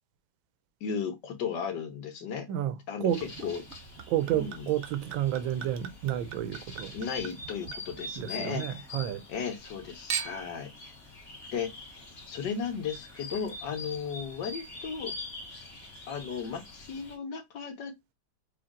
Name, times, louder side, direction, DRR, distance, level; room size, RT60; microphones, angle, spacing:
voice 1, 0.8-2.5 2.9-3.6 4.3-4.7 6.9-8.9 9.3-10.9 11.5-11.7 12.3-15.1 16.1-18.1, left 6 dB, 65° left, 1.6 m, -35 dB
voice 2, 2.5-3.2 4.1-6.9 8.2-9.3, right 11 dB, 90° right, 1.4 m, -30 dB
sound 1, 3.1-17.2, left 3 dB, 35° left, 1.5 m, -45 dB
Chink clink / Liquid, 3.2-8.7 9.1-9.7 10.1-10.6 11.3-11.4, right 8 dB, 65° right, 0.7 m, -41 dB
5.1 x 2.6 x 3.6 m
omnidirectional pair, 2.1 m